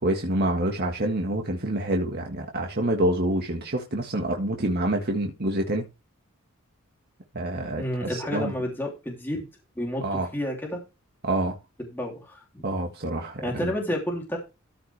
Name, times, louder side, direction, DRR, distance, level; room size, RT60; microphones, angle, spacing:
voice 1, 0.0-5.8 7.3-8.5 10.0-10.3 11.2-11.6 12.6-13.7, right 1 dB, 50° right, 1.7 m, -27 dB
voice 2, 7.8-9.5 9.8-10.8 11.9-12.6 13.4-14.4, left 1 dB, 10° left, 3.1 m, -30 dB
14.0 x 6.0 x 3.5 m
head